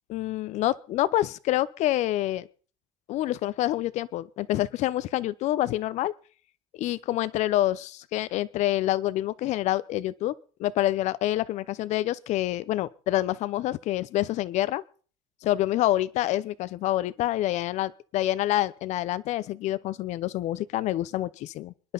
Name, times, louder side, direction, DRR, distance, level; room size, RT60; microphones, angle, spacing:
voice 1, 0.1-2.5 3.1-6.1 6.7-10.3 10.6-14.8 15.4-21.7, left 14 dB, 60° left, 17 dB, 0.8 m, -27 dB
28.0 x 11.0 x 4.0 m, 0.42 s
cardioid pair, 155°, 13 cm